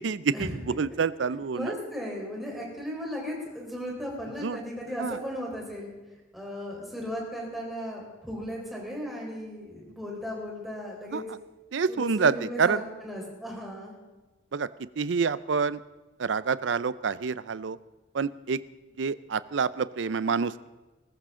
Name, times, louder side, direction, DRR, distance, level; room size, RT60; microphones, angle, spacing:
voice 1, 0.0-1.7 4.4-4.6 5.0-5.2 11.1-11.2 11.7-12.8 14.5-14.7 15.0-15.8 16.2-17.8 18.1-18.6 19.0-20.7, right 5 dB, 75° right, 17 dB, 0.5 m, -27 dB
voice 2, 1.5-5.9 6.3-11.2 11.9-13.9, equal, ahead, -2 dB, 4.0 m, -36 dB
19.5 x 15.0 x 3.8 m, 1.2 s
head